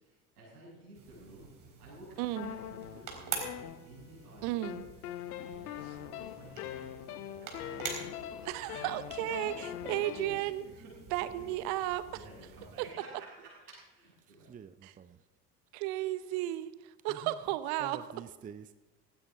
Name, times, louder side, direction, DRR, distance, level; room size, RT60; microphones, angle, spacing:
voice 1, 0.0-1.5 1.8-3.5 3.8-4.7 5.5-7.8 8.4-8.5 9.3-10.7 11.2-11.5 12.1-14.5, right 1 dB, 85° right, 6.6 m, -53 dB
sound 1, 0.9-12.9, right 6 dB, 45° right, 4.0 m, -46 dB
voice 2, 2.2-2.6 4.4-4.9 5.9-6.0 8.4-10.6 11.1-12.2 12.8-12.9 14.8-14.9 15.7-16.7 17.0-18.0, right 15 dB, 60° right, 0.9 m, -34 dB
sound 2, 2.4-4.2 4.6-10.4, left 11 dB, 75° left, 0.9 m, -42 dB
voice 3, 14.3-15.2 17.1-17.3 17.8-18.7, right 7 dB, 20° right, 0.5 m, -48 dB
16.5 x 16.0 x 3.7 m
figure-of-eight pair, 65°, 45 cm